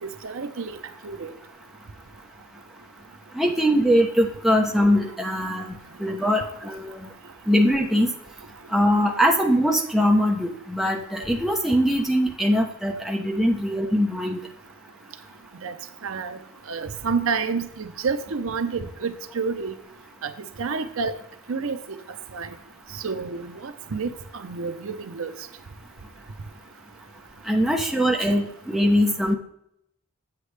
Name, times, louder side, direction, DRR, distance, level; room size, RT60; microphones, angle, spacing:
voice 1, 0.0-0.8 1.0-1.3 15.6-15.7 16.0-16.4 16.7-19.8 20.2-20.3 20.6-21.1 21.5-22.0 22.3-22.5 22.9-25.3 28.2-28.3, right 5 dB, 65° right, 0.6 m, -29 dB
voice 2, 3.3-7.1 7.5-8.1 8.7-14.4 27.5-29.3, equal, ahead, 0.8 m, -22 dB
8.1 x 8.1 x 3.3 m
head